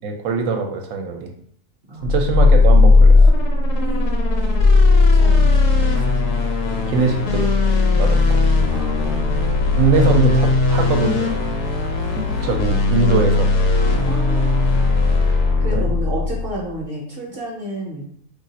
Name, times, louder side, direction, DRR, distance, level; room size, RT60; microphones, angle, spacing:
voice 1, 0.0-1.3 2.0-3.3 6.9-7.5 7.9-8.4 9.8-11.3 12.1-13.5 15.7-15.9, right 4 dB, 75° right, 3 dB, 1.0 m, -22 dB
voice 2, 1.9-2.3 3.7-4.3 5.1-6.0 8.7-9.7 14.0-14.6 15.6-18.1, right 1 dB, 50° right, -2 dB, 0.8 m, -31 dB
sound 1, 2.0-16.6, left 3 dB, 70° left, 1.0 m, -16 dB
2.5 x 2.4 x 4.0 m, 0.63 s
omnidirectional pair, 1.5 m